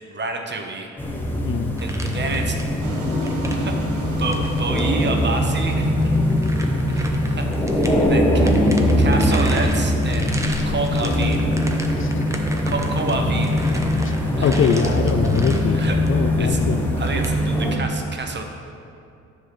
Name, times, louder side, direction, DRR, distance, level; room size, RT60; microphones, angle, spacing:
voice 1, 0.1-0.9 1.8-2.8 3.5-3.8 4.2-6.2 6.9-10.4 10.7-11.5 12.6-14.0 14.4-14.6 15.7-16.0 16.4-16.6 17.0-18.4, right 3 dB, 35° right, 4 dB, 1.0 m, -29 dB
sound 1, 1.0-17.8, left 1 dB, 5° left, 1.1 m, -21 dB
voice 2, 1.4-1.7 2.1-2.2 8.0-8.2 11.9-12.3 14.0-14.1 14.4-16.8, left 7 dB, 45° left, 9 dB, 0.4 m, -23 dB
sound 2, 1.8-2.8 3.1-3.6 4.3-4.9 5.6-8.0 8.3-16.2 17.0-17.3, right 1 dB, 10° right, 0.8 m, -36 dB
sound 3, 2.8-13.7, right 3 dB, 75° right, 1.1 m, -39 dB
10.0 x 3.6 x 6.8 m, 2.5 s
cardioid pair, 90°, 30 cm